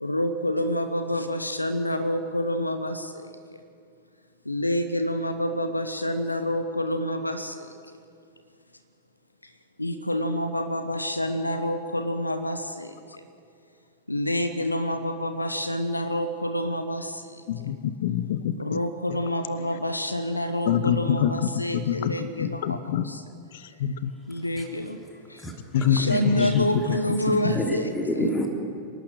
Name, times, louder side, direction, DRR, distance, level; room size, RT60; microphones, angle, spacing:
voice 1, 0.0-3.3 4.4-7.7 9.8-13.2 14.1-17.4 18.6-23.2 24.3-25.0 25.3-25.4 25.9-28.2, left 1 dB, 85° left, 9 dB, 1.0 m, -28 dB
voice 2, 17.5-18.5 20.7-23.1 23.8-24.1 25.7-27.0 27.4-27.6, left 9 dB, 55° left, 15 dB, 0.9 m, -25 dB
voice 3, 25.1-26.6 26.9-28.5, equal, 10° left, 1 dB, 3.3 m, -30 dB
27.0 x 12.0 x 8.0 m, 2.4 s
figure-of-eight pair, 90°, 0 cm